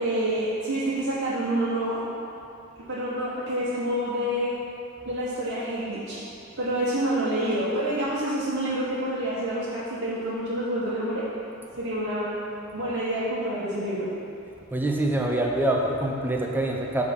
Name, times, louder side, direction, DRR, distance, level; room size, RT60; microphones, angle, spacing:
voice 1, 0.0-2.0 2.9-4.5 5.0-6.2 6.6-11.2 11.8-12.4 12.7-14.1, right 1 dB, 65° right, -10 dB, 1.3 m, -27 dB
voice 2, 14.7-17.0, right 1 dB, 10° right, 0 dB, 0.6 m, -25 dB
7.0 x 4.9 x 5.3 m, 2.6 s
head